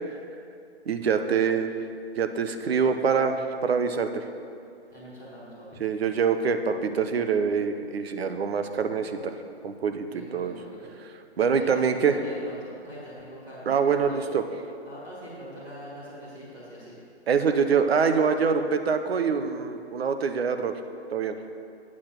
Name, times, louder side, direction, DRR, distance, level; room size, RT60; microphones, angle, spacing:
voice 1, 0.9-1.7 2.2-4.2 5.8-9.4 9.6-10.1 10.3-10.5 11.4-12.1 13.7-14.4 17.3-20.8 21.1-21.4, right 6 dB, 65° right, 8 dB, 0.8 m, -25 dB
voice 2, 4.9-5.8 10.1-10.9 11.6-14.3 14.9-17.0, equal, 15° right, -9 dB, 1.9 m, -43 dB
8.6 x 6.6 x 5.9 m, 2.4 s
hypercardioid pair, 170°, 34 cm